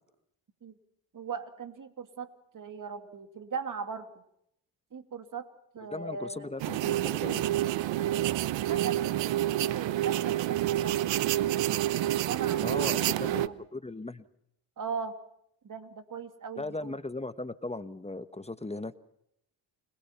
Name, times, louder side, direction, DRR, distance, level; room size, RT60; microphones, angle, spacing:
voice 1, 1.1-2.3 2.5-4.1 4.9-5.5 5.7-6.5 8.0-8.4 8.7-11.1 12.1-13.6 14.8-15.1 15.6-17.0, right 6 dB, 40° right, 9 dB, 2.5 m, -39 dB
voice 2, 5.9-7.4 12.6-14.2 16.6-19.0, left 2 dB, 15° left, 12 dB, 1.2 m, -37 dB
sound 1, 6.6-13.5, right 13 dB, 70° right, 1.0 m, -28 dB
29.5 x 21.0 x 5.8 m, 0.75 s
supercardioid pair, 70°, 46 cm